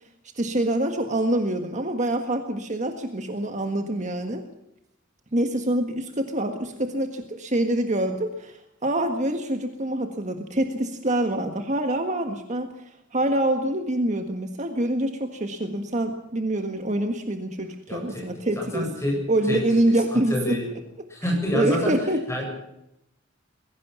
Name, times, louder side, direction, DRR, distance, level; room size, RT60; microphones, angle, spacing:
voice 1, 0.4-4.4 5.3-12.7 13.1-18.9 19.3-20.6 21.2-22.2, right 1 dB, 35° right, 6 dB, 1.7 m, -26 dB
voice 2, 17.9-18.2 18.6-19.2 19.5-19.6 20.1-20.7 21.1-21.9 22.3-22.5, left 1 dB, 15° left, 0 dB, 8.0 m, -27 dB
21.0 x 17.0 x 7.1 m, 0.82 s
head